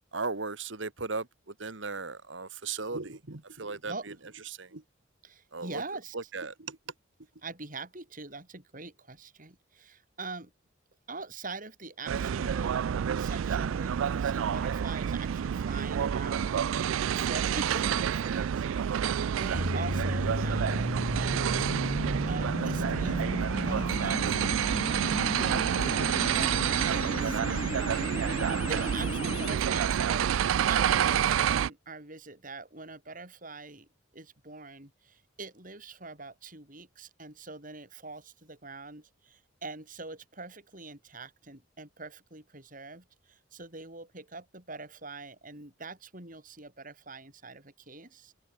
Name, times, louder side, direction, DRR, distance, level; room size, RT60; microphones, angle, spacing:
voice 1, 0.1-1.3 1.6-3.9 4.6-4.8 5.5-5.8 6.1-6.8, right 4 dB, 70° right, 1.7 m, -36 dB
voice 2, 5.2-6.3 7.4-10.5 11.1-12.8 13.1-19.1 19.4-21.6 22.3-23.2 23.6-27.8 28.7-30.3 30.7-33.9 34.1-48.4, right 3 dB, 45° right, 6.9 m, -43 dB
sound 1, 12.1-31.7, right 8 dB, 90° right, 0.4 m, -28 dB
sound 2, 19.5-29.6, left 2 dB, 30° left, 0.6 m, -35 dB
head